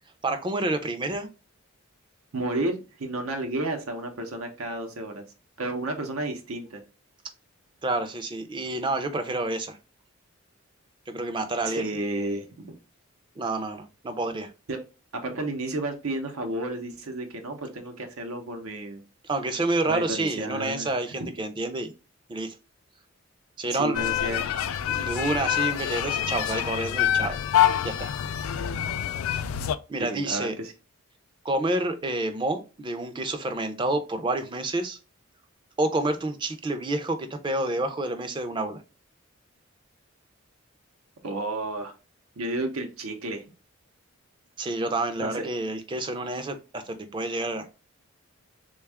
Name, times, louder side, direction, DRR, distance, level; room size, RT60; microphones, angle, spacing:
voice 1, 0.2-1.3 7.8-9.8 11.1-12.0 13.4-14.5 19.2-21.9 22.3-22.5 23.6-24.0 24.9-27.4 27.8-28.1 29.3-29.4 29.9-30.5 31.4-35.0 35.8-38.8 44.6-47.7, right 2 dB, 25° right, 0.4 m, -29 dB
voice 2, 2.3-5.2 5.6-6.8 11.6-12.7 14.7-14.8 15.1-19.0 19.9-21.0 23.7-24.5 30.0-30.7 41.2-41.9 42.4-43.4 45.2-45.5, right 2 dB, 90° right, 0.7 m, -32 dB
sound 1, 23.9-29.8, left 10 dB, 80° left, 0.3 m, -26 dB
3.5 x 2.3 x 3.3 m
head